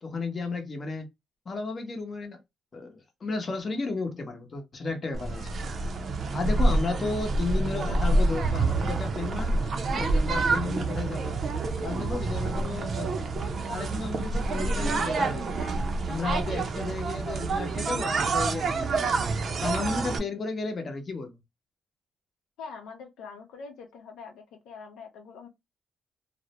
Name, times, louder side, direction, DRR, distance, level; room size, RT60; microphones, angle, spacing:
voice 1, 0.0-1.1 1.5-2.4 2.7-5.6 6.1-11.4 11.8-13.3 13.7-15.7 16.0-19.2 19.6-21.4, left 3 dB, 40° left, 0.8 m, -33 dB
sound 1, 5.1-20.2, right 3 dB, 50° right, 0.5 m, -27 dB
voice 2, 22.6-25.5, left 5 dB, 85° left, 0.6 m, -44 dB
2.4 x 2.1 x 2.8 m
cardioid pair, 90°, 0 cm